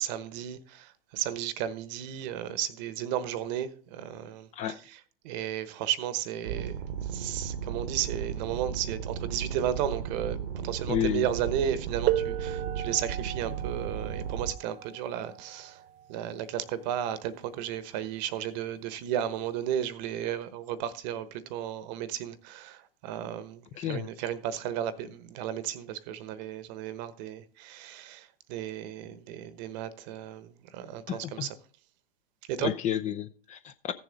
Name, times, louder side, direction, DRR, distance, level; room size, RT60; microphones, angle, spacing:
voice 1, 0.0-15.8 16.1-31.6 32.5-32.7, right 10 dB, 45° right, 1.1 m, -34 dB
sound 1, 6.4-14.5, right 8 dB, 65° right, 1.3 m, -35 dB
voice 2, 10.9-11.2 23.8-24.0 31.1-31.5 32.6-33.9, left 10 dB, 25° left, 0.5 m, -31 dB
sound 2, 12.1-17.5 18.6-18.7 19.5-19.7, right 13 dB, 25° right, 0.5 m, -35 dB
15.0 x 7.1 x 3.9 m
hypercardioid pair, 105°, 30 cm